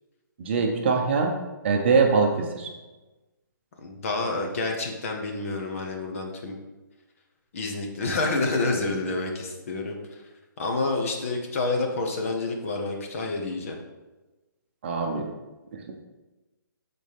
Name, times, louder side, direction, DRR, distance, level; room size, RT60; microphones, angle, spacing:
voice 1, 0.4-1.4 1.6-2.7 14.8-15.3, right 4 dB, 35° right, 2 dB, 0.9 m, -23 dB
voice 2, 3.8-6.5 7.5-10.2 10.6-13.8, left 3 dB, 40° left, 2 dB, 1.3 m, -28 dB
12.0 x 4.3 x 3.6 m, 1.1 s
hypercardioid pair, 165°, 11 cm